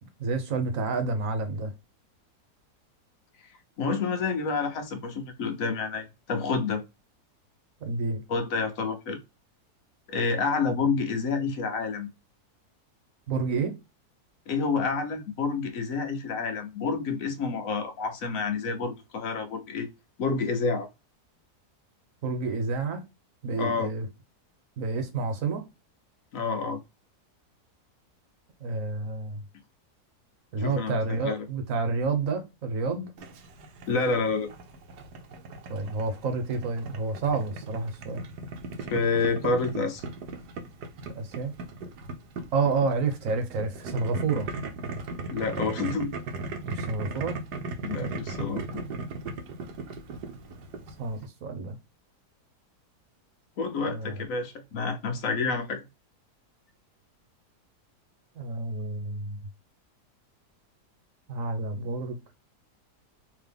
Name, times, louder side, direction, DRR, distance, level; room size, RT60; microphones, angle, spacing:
voice 1, 0.0-1.7 7.8-8.2 13.3-13.7 22.2-23.0 23.4-24.1 24.8-25.6 28.6-29.4 30.5-33.1 35.7-38.2 41.1-41.5 42.5-44.5 46.7-47.4 51.0-51.8 53.9-54.2 58.4-59.4 61.3-62.2, right 3 dB, 60° right, 1.2 m, -29 dB
voice 2, 3.8-6.8 8.3-9.2 10.1-12.1 14.5-19.9 20.2-20.9 23.6-23.9 26.3-26.8 30.6-31.5 33.9-34.5 38.9-40.0 45.3-46.1 47.8-48.9 53.6-55.8, left 4 dB, 60° left, 1.2 m, -28 dB
Boiling, 33.2-51.3, right 3 dB, 80° right, 1.3 m, -38 dB
3.8 x 2.9 x 3.3 m
omnidirectional pair, 1.7 m